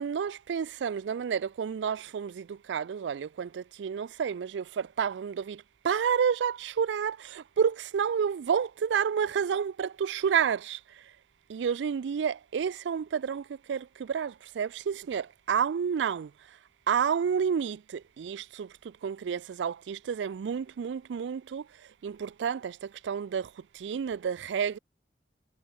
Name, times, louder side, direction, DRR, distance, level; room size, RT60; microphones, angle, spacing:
voice 1, 0.0-10.8 11.5-16.3 16.9-18.7 19.0-21.6 22.0-23.5 23.7-24.8, right 7 dB, 85° right, 0.4 m, -30 dB
head